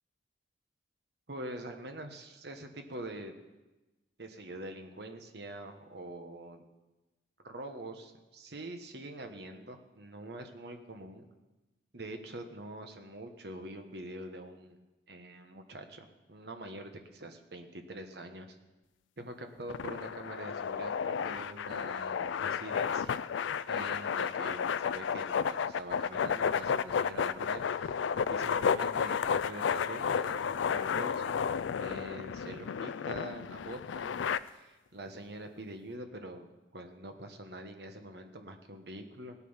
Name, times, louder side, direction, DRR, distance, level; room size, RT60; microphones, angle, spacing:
voice 1, 1.3-3.4 4.2-6.6 7.4-11.3 11.9-14.8 15.1-18.6 19.2-23.2 23.7-27.7 28.3-31.5 31.8-34.2 34.4-39.4, right 1 dB, 60° right, 6 dB, 1.3 m, -45 dB
sound 1, 19.7-34.4, left 7 dB, 80° left, 0.4 m, -32 dB
18.0 x 8.3 x 5.6 m, 1.1 s
head